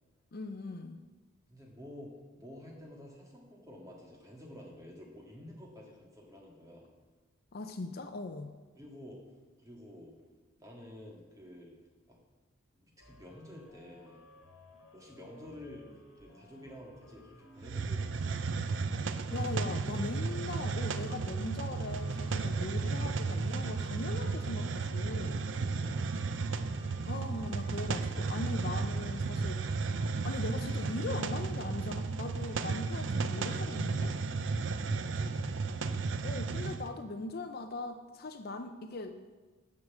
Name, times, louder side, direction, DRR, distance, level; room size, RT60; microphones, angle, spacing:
voice 1, 0.3-1.0 7.5-8.5 19.3-25.5 27.1-29.6 30.2-34.1 36.2-39.2, left 2 dB, 45° left, 7 dB, 0.5 m, -40 dB
voice 2, 1.5-6.9 8.8-9.2 9.6-10.2 10.6-11.7 12.1-12.2 12.7-14.3 14.9-15.9 16.1-18.4 25.5-26.2 31.8-31.9 35.2-35.7, left 1 dB, 15° right, -2 dB, 2.0 m, -50 dB
sound 1, 13.0-31.3, left 1 dB, 65° left, 2.4 m, -58 dB
Hiss, 17.6-36.9, right 4 dB, 55° right, 0.5 m, -34 dB
9.6 x 6.4 x 7.4 m, 1.3 s
head